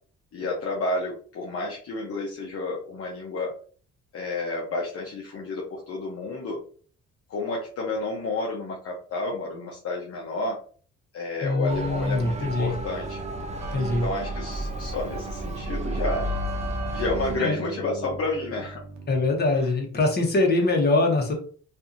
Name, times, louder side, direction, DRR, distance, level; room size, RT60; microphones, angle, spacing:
voice 1, 0.3-3.5 4.1-6.6 7.3-10.6 11.1-13.2 13.8-16.3 16.9-18.8 19.5-19.7, left 2 dB, 50° left, -2 dB, 0.7 m, -31 dB
voice 2, 11.4-12.7 13.7-14.0 17.4-17.6 19.1-21.3, left 2 dB, 35° left, 0 dB, 1.0 m, -23 dB
Motor vehicle (road) / Siren, 11.7-17.4, equal, 25° right, 0.5 m, -32 dB
Keyboard (musical), 12.2-19.5, right 5 dB, 70° right, 0.7 m, -38 dB
2.6 x 2.5 x 2.5 m, 0.43 s
cardioid pair, 90°, 30 cm